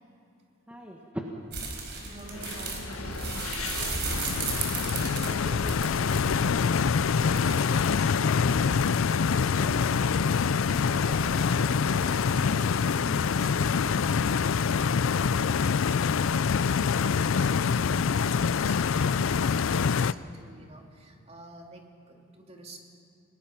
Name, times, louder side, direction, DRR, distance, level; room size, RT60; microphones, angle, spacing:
voice 1, 0.7-1.0 2.0-2.8 4.6-6.7, equal, 5° right, -1 dB, 1.6 m, -47 dB
sound 1, 1.5-7.6, right 4 dB, 55° right, 4.5 m, -35 dB
voice 2, 2.0-3.6 7.2-8.8 9.1-10.1 10.4-22.8, right 1 dB, 30° right, 1 dB, 2.5 m, -48 dB
sound 2, 2.2-12.9, left 3 dB, 90° left, 1.7 m, -39 dB
Stream, 4.1-20.1, left 6 dB, 65° left, 0.4 m, -25 dB
29.5 x 19.0 x 5.8 m, 2.6 s
head